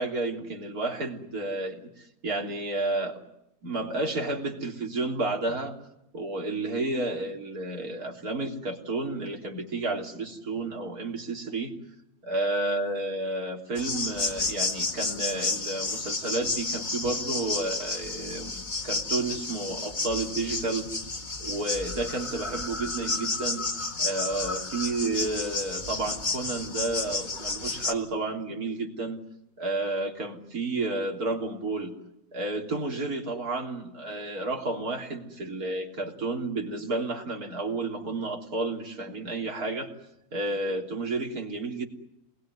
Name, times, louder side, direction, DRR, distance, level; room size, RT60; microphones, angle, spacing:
voice 1, 0.0-3.2 3.6-5.8 6.1-11.7 12.2-20.9 21.4-23.7 24.0-29.2 29.6-31.9 32.3-39.9 40.3-41.9, right 2 dB, 75° right, 2 dB, 4.1 m, -31 dB
sound 1, 13.8-27.9, left 3 dB, 30° left, 1.9 m, -31 dB
28.0 x 20.5 x 9.7 m, 0.82 s
omnidirectional pair, 1.6 m